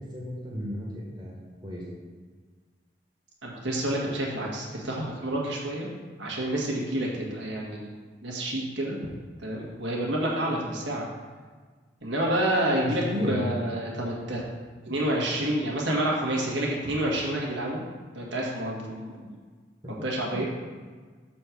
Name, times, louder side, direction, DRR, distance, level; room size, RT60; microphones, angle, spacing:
voice 1, 0.1-1.8 12.8-13.4 19.8-19.9 20.2-20.4, left 1 dB, 25° right, -4 dB, 1.6 m, -33 dB
voice 2, 3.4-5.9 6.2-7.9 8.2-9.0 9.4-11.0 12.0-14.4 14.8-17.8 18.1-19.2 19.9-20.4, right 1 dB, 90° right, -3 dB, 1.7 m, -29 dB
6.4 x 4.4 x 6.0 m, 1.5 s
head